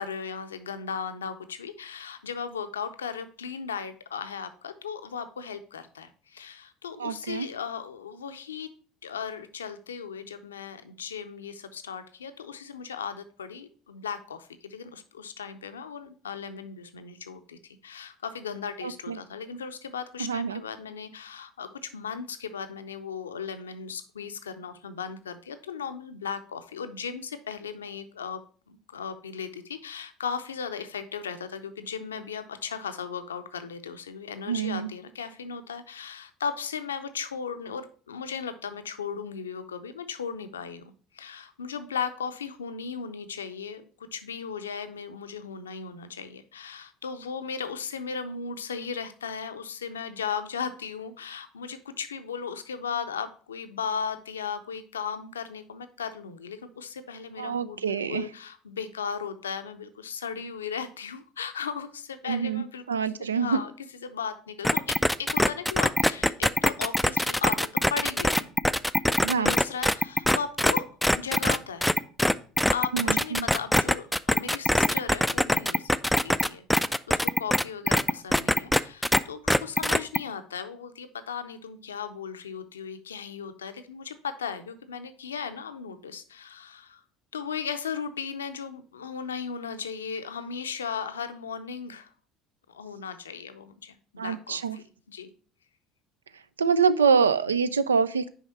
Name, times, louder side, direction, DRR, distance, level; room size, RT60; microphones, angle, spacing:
voice 1, 0.0-8.7 9.0-28.4 28.7-63.0 63.4-63.7 64.0-68.5 69.3-70.8 71.1-71.9 72.7-76.0 76.2-87.0 87.3-92.1 92.7-95.3, left 6 dB, 80° left, 10 dB, 0.5 m, -36 dB
voice 2, 7.0-7.5 18.8-19.2 20.2-20.6 34.5-34.9 57.4-58.2 62.3-63.6 69.2-69.5 72.9-73.5 94.2-94.8 96.6-98.3, right 6 dB, 85° right, 15 dB, 0.3 m, -25 dB
sound 1, 64.6-79.2 79.5-80.2, left 1 dB, 5° left, 0.3 m, -23 dB
6.4 x 4.8 x 4.3 m, 0.43 s
figure-of-eight pair, 60°, 0 cm